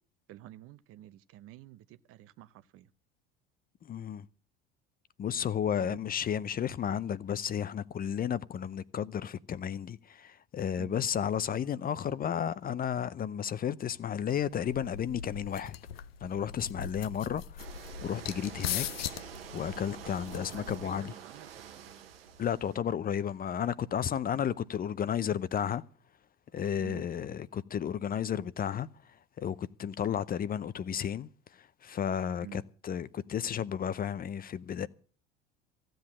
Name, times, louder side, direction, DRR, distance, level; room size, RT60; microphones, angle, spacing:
voice 1, 0.3-2.9 5.8-6.0 10.8-11.0 20.3-22.1 26.8-27.0 32.4-32.6, right 13 dB, 50° right, 0.8 m, -50 dB
voice 2, 3.8-4.3 5.2-15.7 16.2-17.7 18.0-18.9 19.1-19.2 19.5-21.1 22.4-25.8 26.5-34.9, left 8 dB, 30° left, 0.6 m, -33 dB
sound 1, 14.4-21.1, left 9 dB, 80° left, 0.6 m, -40 dB
sound 2, 17.6-22.8, right 8 dB, 85° right, 1.1 m, -47 dB
15.0 x 7.8 x 8.6 m
hypercardioid pair, 70°, 29 cm